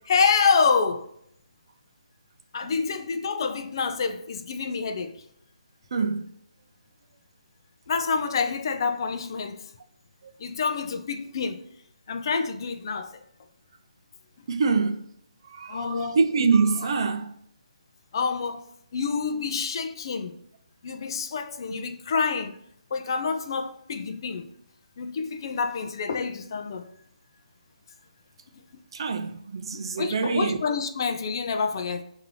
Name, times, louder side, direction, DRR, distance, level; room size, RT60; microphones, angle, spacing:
voice 1, 0.1-1.1 2.5-5.2 7.9-9.6 10.4-11.6 12.1-13.2 15.7-16.2 18.1-18.6 18.9-20.3 20.8-22.6 22.9-24.5 25.0-26.8 29.7-32.0, left 5 dB, 40° left, 0.4 m, -27 dB
voice 2, 2.6-3.0 5.9-6.3 10.2-10.3 14.5-15.1 15.4-17.3 21.7-21.8 28.9-30.6, right 4 dB, 45° right, 0.4 m, -25 dB
5.3 x 2.7 x 2.7 m
hypercardioid pair, 165°, 4 cm